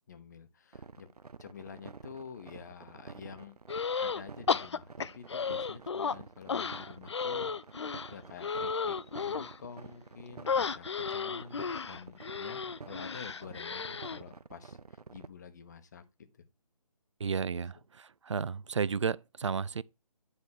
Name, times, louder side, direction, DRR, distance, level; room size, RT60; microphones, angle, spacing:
voice 1, 0.1-1.1 1.4-3.6 3.9-7.5 8.1-16.0 16.3-16.4 17.5-17.6, left 6 dB, 30° left, 0.9 m, -49 dB
sound 1, 0.7-15.3, right 4 dB, 80° right, 0.7 m, -49 dB
sound 2, 3.7-4.2 4.5-6.2 6.5-9.6 10.5-14.2, left 5 dB, 45° left, 0.4 m, -33 dB
voice 2, 17.2-19.8, right 6 dB, 50° right, 0.4 m, -33 dB
9.9 x 3.5 x 6.3 m
figure-of-eight pair, 155°, 20 cm